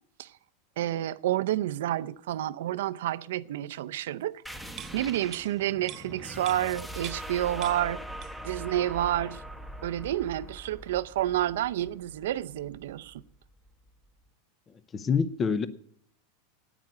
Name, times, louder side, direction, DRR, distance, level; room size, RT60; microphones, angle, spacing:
voice 1, 0.8-4.3 4.9-8.0 8.4-9.4 9.8-13.2, right 13 dB, 75° right, 0.5 m, -29 dB
sound 1, 4.5-13.7, equal, 5° left, 1.1 m, -42 dB
sound 2, 4.8-7.4 7.6-8.6 8.9-9.0, right 13 dB, 40° right, 0.8 m, -45 dB
voice 2, 14.9-15.7, left 5 dB, 25° left, 0.7 m, -26 dB
9.3 x 8.9 x 9.4 m
hypercardioid pair, 115°, 0 cm